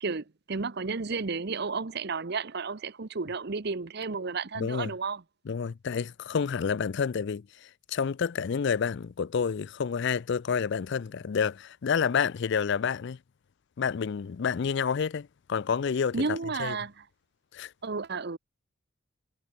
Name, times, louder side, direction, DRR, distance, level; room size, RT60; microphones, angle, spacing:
voice 1, 0.0-5.2 16.1-17.0 17.8-18.4, right 4 dB, 50° right, 0.7 m, -32 dB
voice 2, 4.6-4.9 5.5-13.2 13.8-16.8 17.5-17.7, left 6 dB, 50° left, 0.4 m, -29 dB
head